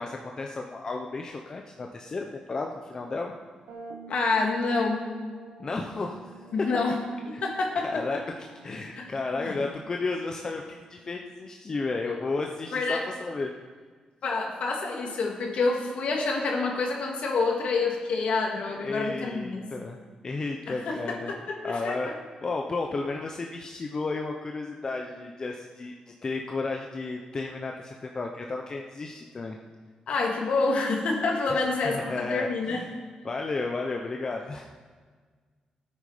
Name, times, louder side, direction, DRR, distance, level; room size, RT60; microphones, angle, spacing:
voice 1, 0.0-3.3 5.6-6.4 7.3-7.4 7.8-13.5 18.7-20.0 20.2-21.3 21.6-22.1 22.4-29.6 31.5-32.9 33.2-34.7, left 3 dB, 30° left, 2 dB, 0.8 m, -33 dB
sound 1, 3.7-11.3, right 4 dB, 70° right, 1.3 m, -48 dB
voice 2, 4.1-5.1 6.5-8.0 9.0-9.1 9.4-9.6 12.0-12.2 12.7-13.0 14.2-19.7 20.7-22.0 30.1-32.8, left 3 dB, 60° left, 1 dB, 2.3 m, -28 dB
17.5 x 8.8 x 5.0 m, 1.5 s
wide cardioid pair, 155°, 2 cm